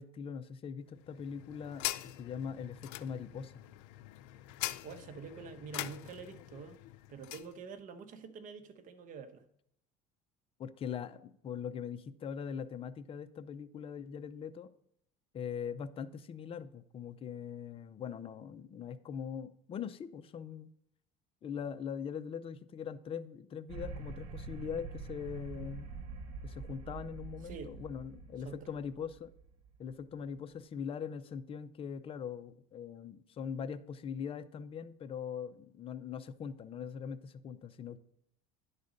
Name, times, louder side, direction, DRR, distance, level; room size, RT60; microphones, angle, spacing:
voice 1, 0.0-3.7 10.6-14.7 15.3-20.7 21.4-26.0 26.4-29.3 29.8-38.0, left 7 dB, 30° left, 0.6 m, -41 dB
sound 1, 0.9-7.5, left 16 dB, 80° left, 0.5 m, -43 dB
voice 2, 4.8-6.8 7.1-9.4 27.4-27.8 28.4-28.7, right 6 dB, 50° right, 1.0 m, -47 dB
sound 2, 23.7-30.2, right 4 dB, 85° right, 1.1 m, -46 dB
10.5 x 4.1 x 5.1 m
supercardioid pair, 115°, 17 cm